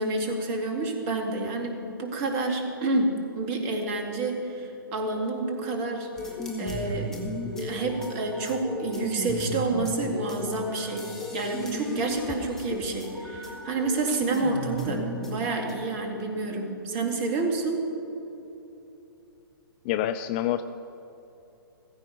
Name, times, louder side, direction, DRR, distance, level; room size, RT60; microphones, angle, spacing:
voice 1, 0.0-6.1 6.6-7.3 7.6-17.8, right 3 dB, 30° right, 3 dB, 2.4 m, -29 dB
sound 1, 6.2-15.7, equal, 5° left, 2.0 m, -35 dB
voice 2, 19.8-20.6, left 12 dB, 25° left, 11 dB, 0.4 m, -27 dB
16.0 x 15.0 x 5.4 m, 3.0 s
figure-of-eight pair, 125°, 12 cm